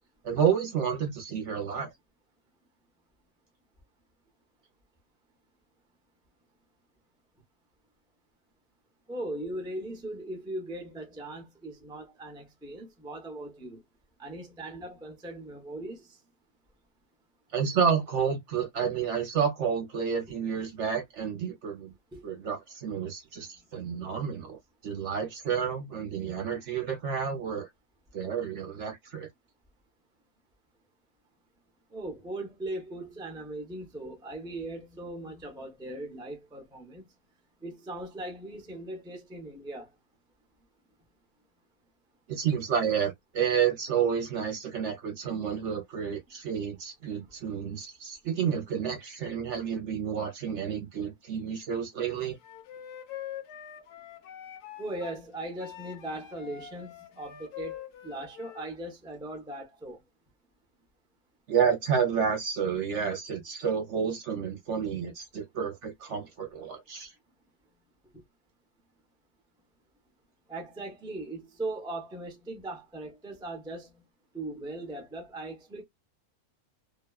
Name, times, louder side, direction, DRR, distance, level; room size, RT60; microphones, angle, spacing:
voice 1, 0.2-1.9 17.5-21.9 22.2-27.7 28.1-29.3 42.3-52.4 61.5-67.1, right 7 dB, 60° right, 0.9 m, -30 dB
voice 2, 9.1-13.8 14.2-16.2 22.1-22.2 26.2-26.5 31.9-37.1 37.6-39.9 54.8-60.0 68.1-68.2 70.5-74.0 74.3-75.8, right 1 dB, 5° right, 0.5 m, -39 dB
Wind instrument woodwind instrument, 52.4-55.2 55.6-58.7, left 11 dB, 90° left, 1.2 m, -44 dB
2.8 x 2.2 x 2.3 m
omnidirectional pair, 1.6 m